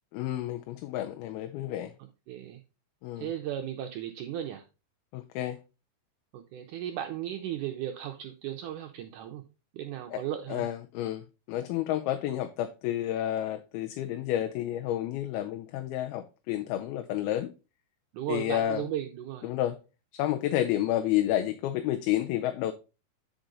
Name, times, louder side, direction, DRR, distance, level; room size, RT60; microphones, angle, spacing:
voice 1, 0.1-1.9 3.0-3.3 5.1-5.6 10.1-10.2 10.5-17.5 18.3-18.8 19.4-19.8 20.1-22.7, left 12 dB, 85° left, 2.5 m, -30 dB
voice 2, 2.3-2.6 3.2-4.6 6.3-9.4 9.7-10.7 18.1-19.5, right 11 dB, 80° right, 1.8 m, -36 dB
9.0 x 5.1 x 3.8 m
omnidirectional pair, 4.4 m